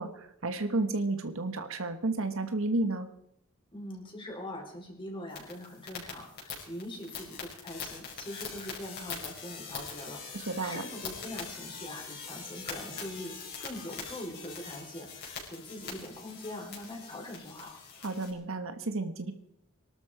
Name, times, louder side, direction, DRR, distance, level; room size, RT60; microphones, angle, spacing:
voice 1, 0.0-3.1 10.3-10.8 18.0-19.3, right 2 dB, 65° right, 9 dB, 1.4 m, -32 dB
voice 2, 3.7-13.3 13.6-17.8, left 1 dB, 25° left, 0 dB, 4.7 m, -42 dB
sound 1, 5.3-18.3, left 5 dB, 50° left, 5.7 m, -43 dB
22.5 x 12.5 x 5.1 m, 0.79 s
head